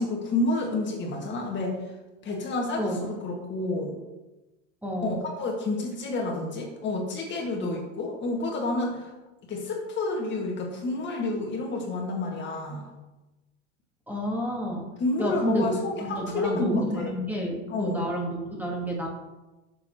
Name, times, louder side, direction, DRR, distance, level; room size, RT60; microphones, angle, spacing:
voice 1, 0.0-1.8 2.2-4.0 5.0-9.1 9.5-12.9 15.0-17.1 17.7-18.0, left 2 dB, 30° left, 1 dB, 1.9 m, -29 dB
voice 2, 4.8-5.2 14.1-14.9 15.2-19.1, equal, 5° right, -2 dB, 1.5 m, -29 dB
11.0 x 6.9 x 3.0 m, 1.1 s
supercardioid pair, 130°, 36 cm